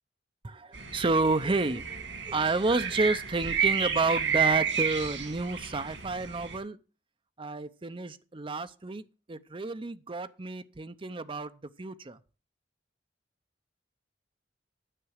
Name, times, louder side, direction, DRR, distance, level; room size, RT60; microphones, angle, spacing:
voice 1, 0.4-1.8 2.3-6.8 7.4-9.0 9.3-11.5 11.8-12.2, right 3 dB, 30° right, 0.6 m, -30 dB
sound 1, 0.7-6.6, right 7 dB, 90° right, 2.3 m, -31 dB
10.0 x 6.9 x 6.4 m
head